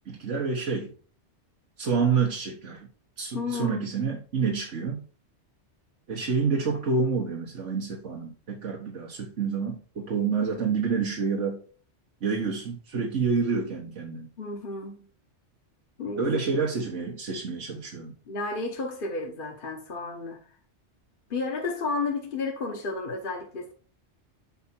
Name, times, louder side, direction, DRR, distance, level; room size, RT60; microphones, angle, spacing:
voice 1, 0.1-0.9 1.8-2.9 3.2-5.0 6.1-11.6 12.2-14.3 16.2-18.1, right 5 dB, 90° right, 1.7 m, -28 dB
voice 2, 3.3-3.9 14.4-15.0 16.0-16.4 18.3-20.4 21.3-23.7, left 3 dB, 50° left, 1.3 m, -32 dB
7.9 x 4.9 x 4.3 m
omnidirectional pair, 1.2 m